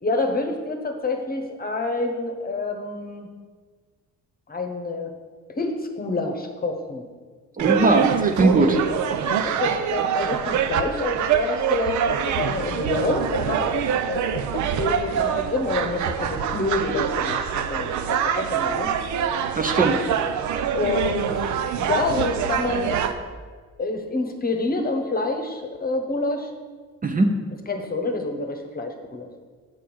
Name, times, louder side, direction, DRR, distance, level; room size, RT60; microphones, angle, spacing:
voice 1, 0.0-3.3 4.5-5.1 5.5-7.0 9.2-18.9 20.7-21.5 21.8-23.1 23.8-26.5 27.7-29.3, left 2 dB, 30° left, 4 dB, 1.0 m, -27 dB
voice 2, 7.6-8.8 19.6-20.0 27.0-27.4, right 2 dB, 30° right, 5 dB, 0.7 m, -19 dB
sound 1, 7.6-23.1, right 8 dB, 70° right, 0.6 m, -25 dB
6.8 x 4.6 x 6.2 m, 1.5 s
cardioid pair, 90°, 30 cm